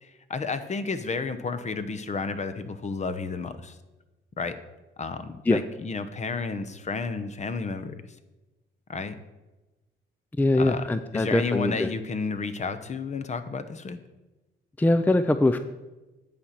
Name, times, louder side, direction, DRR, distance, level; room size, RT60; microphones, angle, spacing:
voice 1, 0.0-3.8 4.4-4.6 5.0-7.9 8.9-9.1 10.6-10.9 11.1-14.0, left 4 dB, 35° left, 11 dB, 0.8 m, -32 dB
voice 2, 10.4-11.9 14.8-15.6, left 2 dB, 10° left, 11 dB, 0.4 m, -22 dB
9.6 x 4.3 x 7.5 m, 1.1 s
cardioid pair, 90°, 20 cm